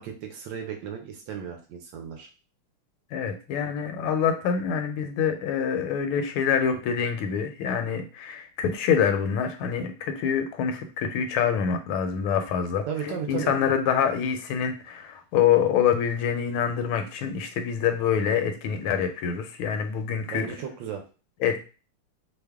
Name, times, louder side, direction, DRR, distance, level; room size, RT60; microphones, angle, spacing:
voice 1, 0.0-2.3 12.9-13.5 20.3-21.0, right 8 dB, 70° right, 3 dB, 1.2 m, -35 dB
voice 2, 3.1-20.5 21.4-21.6, left 7 dB, 85° left, 7 dB, 1.4 m, -26 dB
3.4 x 2.1 x 3.4 m, 0.34 s
omnidirectional pair, 2.3 m